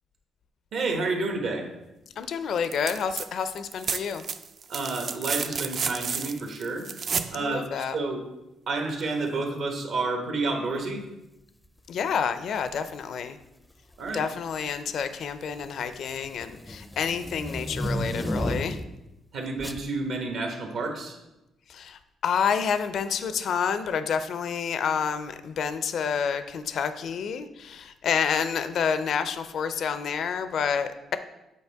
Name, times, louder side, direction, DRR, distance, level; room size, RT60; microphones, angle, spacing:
voice 1, 0.7-1.7 4.7-6.9 7.3-8.2 8.7-11.0 14.0-14.2 19.3-21.2, right 3 dB, 70° right, 3 dB, 1.3 m, -30 dB
voice 2, 2.2-4.2 7.4-7.9 11.9-13.4 14.1-18.8 21.7-31.2, left 7 dB, 65° left, 11 dB, 0.4 m, -29 dB
sound 1, 2.6-3.3 3.5-7.4 9.0-9.1, right 6 dB, 50° right, 0.4 m, -31 dB
sound 2, 12.7-13.0 13.9-14.4 14.7-19.0 19.6-19.9, equal, 10° left, 0.4 m, -33 dB
8.2 x 4.3 x 3.5 m, 0.94 s
cardioid pair, 90°, 0 cm